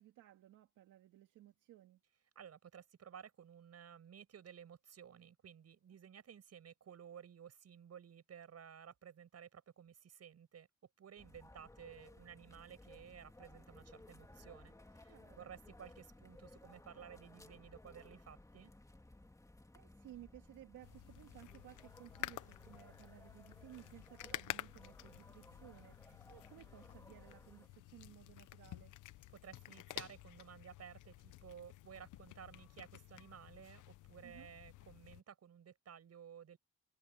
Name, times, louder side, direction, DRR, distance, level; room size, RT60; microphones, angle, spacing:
voice 1, 0.0-2.0 15.1-15.5 19.7-28.9 34.2-34.5, right 13 dB, 85° right, 2.2 m, -58 dB
voice 2, 2.4-10.7 11.0-18.7 29.3-36.6, right 8 dB, 55° right, 7.1 m, -55 dB
sound 1, 11.2-27.7, left 2 dB, 10° left, 2.9 m, -60 dB
sound 2, 20.8-35.2, left 15 dB, 85° left, 0.9 m, -51 dB
cardioid pair, 90°, 30 cm